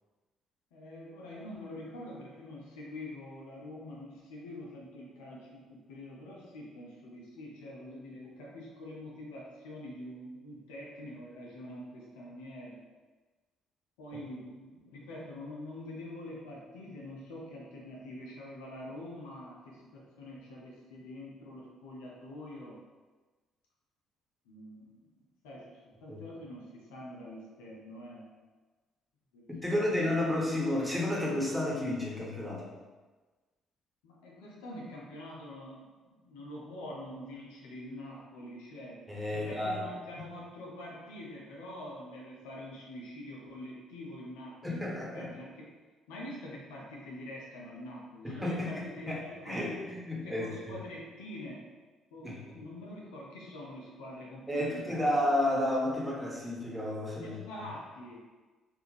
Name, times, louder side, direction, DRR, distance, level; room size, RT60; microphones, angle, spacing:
voice 1, 0.7-12.8 14.0-22.8 24.5-25.1 25.4-28.3 29.3-30.1 34.0-39.0 39.3-45.7 46.1-49.7 50.1-51.7 52.1-55.2 57.2-58.2, left 1 dB, 75° left, -3 dB, 0.6 m, -45 dB
voice 2, 29.6-32.7 39.1-39.9 44.6-45.3 48.2-50.8 52.2-52.4 54.5-57.4, left 1 dB, 5° right, -4 dB, 1.1 m, -31 dB
3.5 x 2.5 x 2.9 m, 1.3 s
hypercardioid pair, 45°, 0 cm